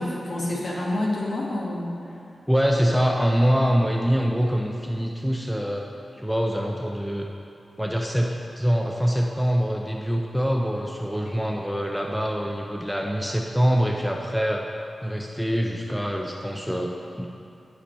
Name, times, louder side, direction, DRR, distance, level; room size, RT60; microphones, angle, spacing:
voice 1, 0.0-2.1 11.2-11.4, left 1 dB, 55° left, -4 dB, 1.4 m, -28 dB
voice 2, 2.5-5.9 6.2-7.3 7.8-14.7 15.0-17.3, equal, ahead, 0 dB, 0.4 m, -24 dB
8.3 x 5.7 x 4.2 m, 2.6 s
wide cardioid pair, 115°, 0 cm